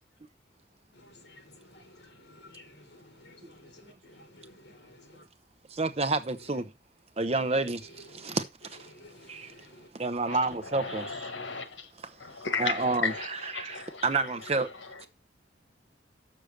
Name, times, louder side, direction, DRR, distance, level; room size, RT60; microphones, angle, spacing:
voice 1, 0.9-5.3 6.4-6.6 7.5-8.4 8.8-9.9, left 1 dB, 60° left, 2.2 m, -54 dB
voice 2, 5.7-6.7 7.2-8.4 8.7-8.9 9.3-9.5 9.9-11.2 12.6-13.1 13.6-14.7, right 3 dB, 35° right, 0.8 m, -29 dB
voice 3, 10.3-15.1, left 5 dB, 80° left, 1.6 m, -36 dB
6.7 x 6.3 x 6.4 m
head